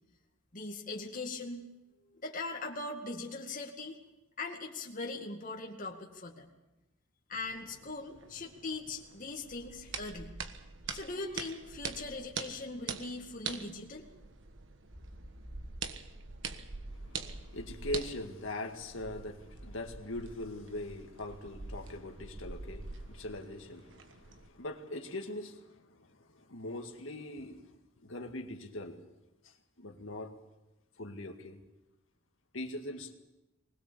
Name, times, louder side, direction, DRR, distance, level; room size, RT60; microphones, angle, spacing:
voice 1, 0.5-1.7 2.2-4.0 4.4-6.5 7.3-10.4 10.9-14.1, left 3 dB, 40° left, 0 dB, 2.2 m, -40 dB
sound 1, 7.3-24.5, right 5 dB, 65° right, 1.4 m, -45 dB
sound 2, 14.9-18.8 19.3-19.4, equal, 45° right, 2.4 m, -53 dB
voice 2, 16.9-27.6 28.0-29.0 29.4-30.3 31.0-31.6 32.5-33.1, left 1 dB, 75° left, 4 dB, 2.0 m, -42 dB
21.0 x 20.0 x 7.0 m, 1.0 s
head